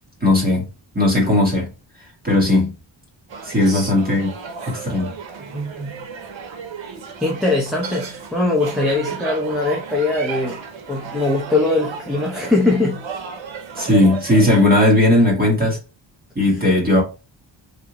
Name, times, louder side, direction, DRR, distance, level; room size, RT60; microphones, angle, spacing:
voice 1, 0.2-0.7 1.0-1.7 2.2-2.7 3.4-4.3 4.7-5.1 13.8-15.8 16.4-17.0, left 1 dB, 20° right, 1.6 m, -16 dB
sound 1, 3.3-14.9, right 6 dB, 75° right, 0.8 m, -34 dB
voice 2, 5.5-6.0 7.2-10.6 10.9-13.0, left 2 dB, ahead, 0.6 m, -21 dB
3.6 x 2.6 x 2.9 m
wide cardioid pair, 140°, 46 cm